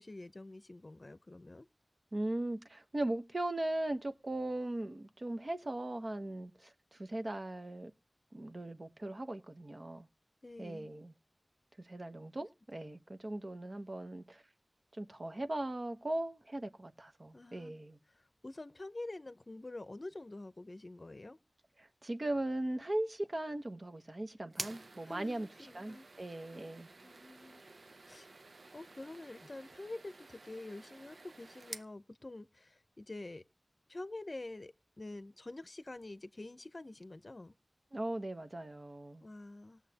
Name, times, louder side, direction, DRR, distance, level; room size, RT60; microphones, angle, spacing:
voice 1, 0.0-1.7 10.4-11.0 17.3-21.4 25.0-26.0 26.5-26.7 27.0-27.6 28.1-28.3 28.7-33.4 33.9-37.6 39.2-39.8, left 2 dB, 45° left, 0.7 m, -47 dB
voice 2, 2.1-7.9 8.3-10.1 10.6-11.1 11.8-14.4 14.9-18.0 21.8-26.9 37.9-39.2, right 1 dB, 45° right, 1.0 m, -39 dB
sound 1, 24.5-31.9, right 3 dB, 80° right, 0.6 m, -50 dB
20.0 x 7.3 x 2.8 m
wide cardioid pair, 65°, 0 cm